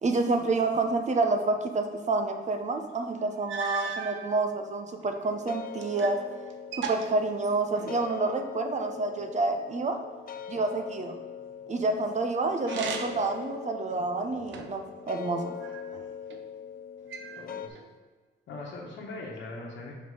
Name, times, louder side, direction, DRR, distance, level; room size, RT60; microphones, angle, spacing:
voice 1, 0.0-6.2 6.9-10.0 10.5-11.1 11.7-14.8 15.1-15.5, right 3 dB, 35° right, 6 dB, 0.9 m, -28 dB
sound 1, 2.9-3.0 3.5-4.2 5.0-6.2 6.5-8.0 12.6-13.3 13.9-14.9 15.6-16.4 17.1-17.9, right 6 dB, 70° right, 0.8 m, -38 dB
sound 2, 5.2-17.7, left 7 dB, 45° left, 0.6 m, -42 dB
voice 2, 17.4-17.8 18.5-19.9, left 2 dB, 70° left, -4 dB, 1.3 m, -40 dB
5.4 x 5.0 x 5.5 m, 1.5 s
cardioid pair, 90°, 20 cm